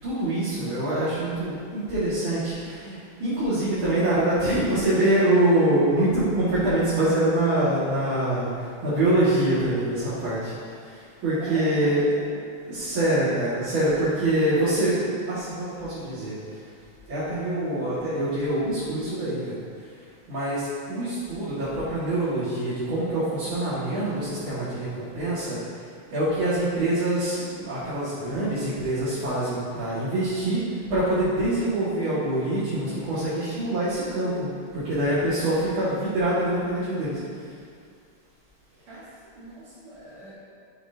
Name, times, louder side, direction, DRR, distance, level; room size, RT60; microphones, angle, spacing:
voice 1, 0.0-12.0 12.7-16.6 17.1-19.6 20.3-25.6 26.1-37.5, right 1 dB, 70° right, -12 dB, 3.0 m, -25 dB
voice 2, 11.4-12.4 38.9-40.3, right 1 dB, 90° right, -11 dB, 2.9 m, -41 dB
13.0 x 8.0 x 2.9 m, 2.2 s
omnidirectional pair, 2.3 m